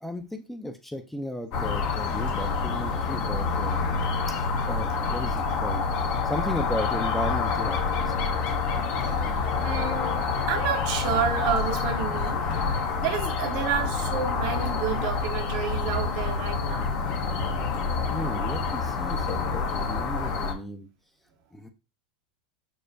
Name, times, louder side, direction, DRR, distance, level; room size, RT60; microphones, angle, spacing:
voice 1, 0.0-3.8 4.3-5.8 6.2-8.2 18.1-20.9 21.5-21.7, left 1 dB, 5° left, 0.5 m, -35 dB
sound 1, 1.5-20.5, left 4 dB, 50° left, 0.9 m, -27 dB
voice 2, 9.6-17.0, right 7 dB, 60° right, 0.9 m, -30 dB
6.3 x 2.1 x 2.6 m
hypercardioid pair, 100°, 4 cm